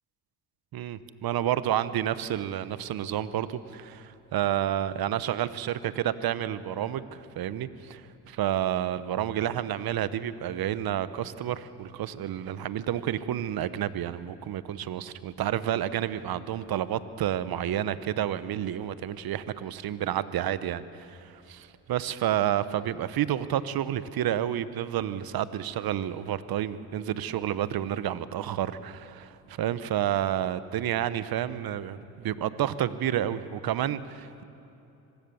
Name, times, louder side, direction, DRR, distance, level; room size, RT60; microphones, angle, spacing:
voice 1, 0.7-8.0 8.3-34.4, right 11 dB, 60° right, 14 dB, 1.1 m, -30 dB
25.0 x 18.5 x 7.1 m, 2.8 s
supercardioid pair, 65°, 42 cm